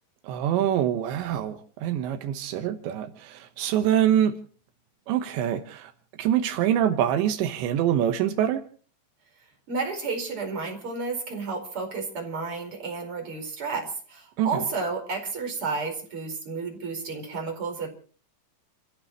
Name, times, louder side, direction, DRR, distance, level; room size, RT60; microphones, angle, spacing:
voice 1, 0.2-4.3 5.1-5.9 6.2-8.6 14.4-14.6, right 10 dB, 85° right, 3.5 m, -25 dB
voice 2, 9.7-17.9, right 4 dB, 30° right, 5.3 m, -31 dB
30.0 x 15.5 x 3.1 m
omnidirectional pair, 5.1 m